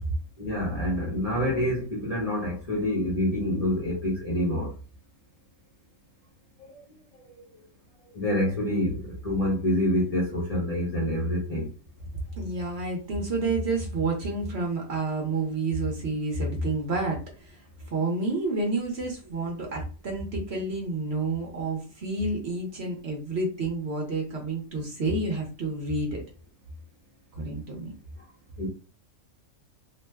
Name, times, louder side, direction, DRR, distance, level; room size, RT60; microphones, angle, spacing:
voice 1, 0.4-4.7 6.6-6.8 7.4-7.5 8.1-11.7 28.6-28.7, left 1 dB, 35° left, 0.7 m, -27 dB
voice 2, 12.3-17.6 17.9-26.2 27.4-27.9, right 2 dB, 50° right, 1.0 m, -29 dB
2.9 x 2.1 x 3.4 m
omnidirectional pair, 1.5 m